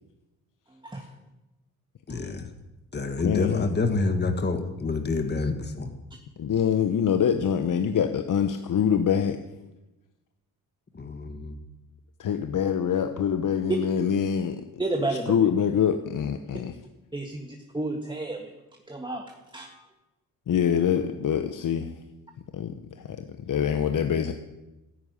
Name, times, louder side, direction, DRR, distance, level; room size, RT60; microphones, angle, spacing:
voice 1, 2.1-2.5 2.9-5.9 10.9-11.6, left 3 dB, 30° left, 6 dB, 1.7 m, -28 dB
voice 2, 3.2-3.7 6.4-9.4 12.2-14.6 15.1-16.7 20.5-21.9 22.5-24.3, left 8 dB, 60° left, 7 dB, 1.1 m, -25 dB
voice 3, 14.8-15.3 17.1-18.6 18.9-19.9, right 2 dB, 15° right, 2 dB, 1.7 m, -32 dB
13.5 x 11.0 x 9.7 m, 1.0 s
cardioid pair, 100°, 36 cm